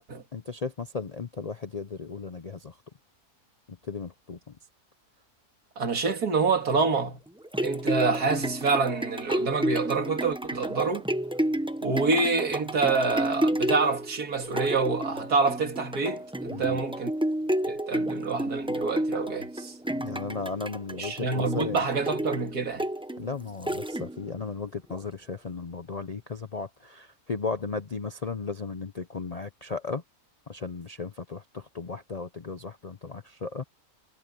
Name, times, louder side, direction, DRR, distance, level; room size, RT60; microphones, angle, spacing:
voice 1, 0.3-2.7 3.9-4.4 16.5-16.8 19.9-21.9 23.2-30.0 30.5-33.6, left 4 dB, 45° left, 0.5 m, -35 dB
voice 2, 5.8-7.2 7.6-11.0 11.8-17.1 17.7-19.7 20.9-22.9, right 4 dB, 80° right, 2.8 m, -27 dB
sound 1, 7.3-24.4 24.9-25.0, right 1 dB, 5° right, 0.5 m, -31 dB
omnidirectional pair, 1.6 m